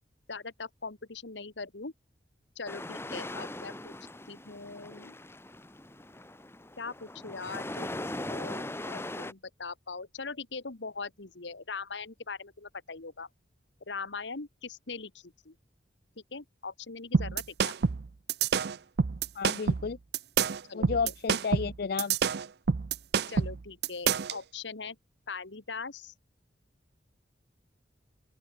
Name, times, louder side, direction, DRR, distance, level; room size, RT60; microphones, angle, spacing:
voice 1, 0.3-1.9 2.5-3.9 4.3-5.1 6.8-13.3 13.9-15.5 16.3-17.7 20.7-20.9 23.3-25.0 25.3-26.1, left 4 dB, 85° left, 1.7 m, -41 dB
sound 1, 2.7-9.3, left 1 dB, 15° left, 1.6 m, -40 dB
sound 2, 17.1-24.4, right 6 dB, 60° right, 0.5 m, -27 dB
voice 2, 19.4-20.0 20.7-22.2, left 5 dB, 60° left, 0.5 m, -32 dB
open air
head